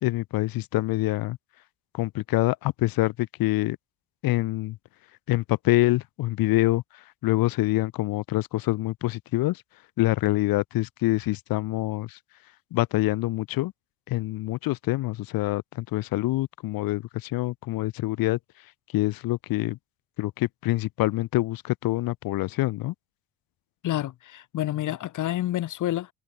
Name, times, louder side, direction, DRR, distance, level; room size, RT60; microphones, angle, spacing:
voice 1, 0.0-1.4 1.9-3.8 4.2-4.8 5.3-9.6 10.0-12.2 12.7-13.7 14.1-18.4 18.9-19.8 20.2-22.9, left 17 dB, 70° left, 2.4 m, -26 dB
voice 2, 23.8-26.1, left 13 dB, 55° left, 3.5 m, -28 dB
cardioid pair, 155°, 37 cm